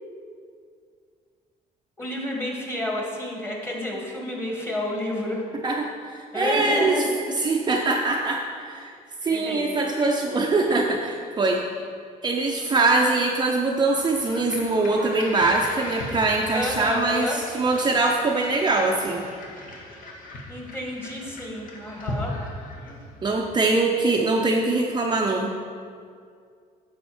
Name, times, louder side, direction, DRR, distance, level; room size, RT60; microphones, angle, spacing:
voice 1, 2.0-5.5 6.3-7.1 9.3-9.8 16.5-17.4 20.5-22.3, left 1 dB, 15° left, -1 dB, 2.1 m, -30 dB
voice 2, 5.6-7.0 7.3-8.9 9.2-11.6 12.2-19.2 23.2-25.5, right 3 dB, 25° right, 0 dB, 0.7 m, -23 dB
sound 1, 14.0-23.3, left 1 dB, 55° left, 1.8 m, -38 dB
10.0 x 7.5 x 4.4 m, 2.2 s
cardioid pair, 110°, 17 cm